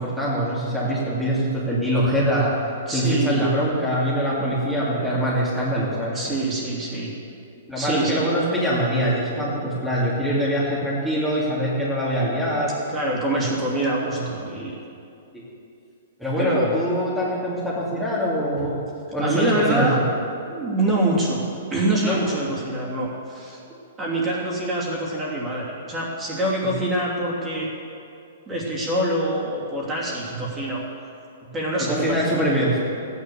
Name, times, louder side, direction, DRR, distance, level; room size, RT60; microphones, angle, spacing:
voice 1, 0.0-2.5 2.9-6.2 7.7-12.7 13.3-13.4 15.3-15.4 16.2-18.8 19.1-19.9 22.0-22.2 26.7-26.8 30.4-30.5 31.8-32.8, equal, ahead, -10 dB, 2.5 m, -23 dB
voice 2, 2.9-3.5 6.1-7.1 7.8-8.2 12.9-14.8 16.4-16.8 19.2-20.0 20.5-23.6 24.0-27.7 28.5-30.8 31.5-32.4, right 1 dB, 15° right, -4 dB, 2.9 m, -25 dB
14.5 x 9.9 x 6.9 m, 2.6 s
hypercardioid pair, 155°, 0 cm